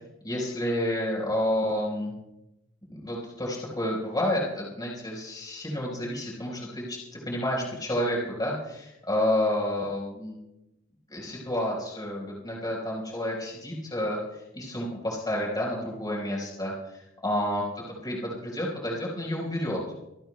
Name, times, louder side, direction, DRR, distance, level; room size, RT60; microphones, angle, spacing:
voice 1, 0.2-2.1 2.9-10.4 11.1-19.8, left 1 dB, 20° left, -3 dB, 4.7 m, -30 dB
26.5 x 18.5 x 2.3 m, 0.90 s
head